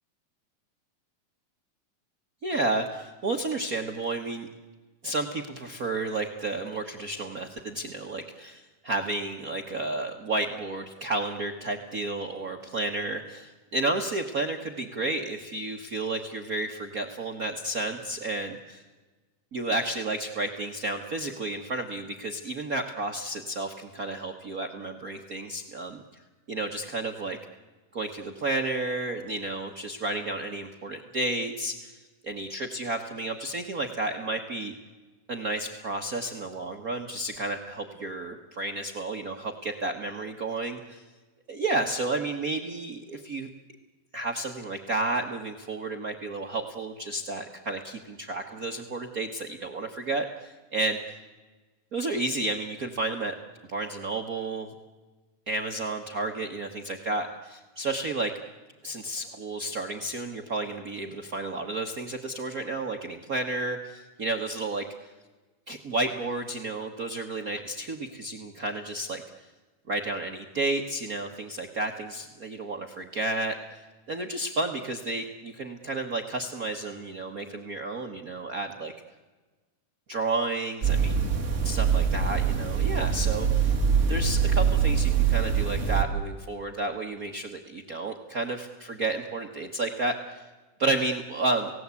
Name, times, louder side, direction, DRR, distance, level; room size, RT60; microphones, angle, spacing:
voice 1, 2.4-4.5 5.0-18.8 19.5-26.0 26.5-27.4 27.9-31.9 32.2-34.7 35.3-41.0 41.5-43.5 44.1-51.0 51.9-53.3 53.7-54.7 55.5-58.3 58.8-64.8 65.7-69.2 69.9-73.5 74.1-78.9 80.1-81.3 81.6-83.7 84.1-90.4 90.8-91.7, right 2 dB, 80° right, 2 dB, 0.8 m, -31 dB
sound 1, 80.8-86.0, right 7 dB, 40° right, 1.1 m, -24 dB
29.5 x 17.5 x 8.4 m, 1.3 s
omnidirectional pair, 3.9 m